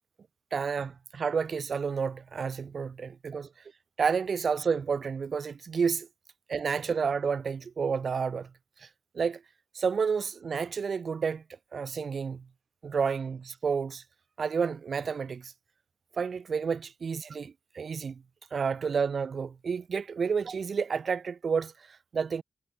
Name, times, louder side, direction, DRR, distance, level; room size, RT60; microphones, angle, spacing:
voice 1, 0.5-3.5 4.0-6.1 6.5-8.5 8.8-8.9 9.1-9.4 9.7-11.4 11.7-12.4 12.8-14.0 14.4-15.5 16.1-18.2 18.5-22.4, right 6 dB, 65° right, 1.6 m, -30 dB
cardioid pair, 65°, 0 cm